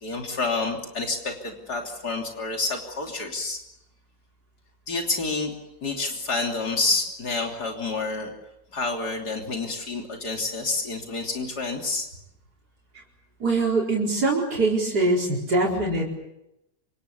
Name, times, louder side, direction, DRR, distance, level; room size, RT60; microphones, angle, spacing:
voice 1, 0.0-3.6 4.9-5.5 5.8-8.3 8.7-12.1, left 3 dB, 85° left, 2 dB, 3.7 m, -28 dB
voice 2, 13.4-16.1, right 2 dB, 85° right, -3 dB, 5.1 m, -23 dB
27.0 x 26.0 x 7.1 m, 0.86 s
omnidirectional pair, 1.7 m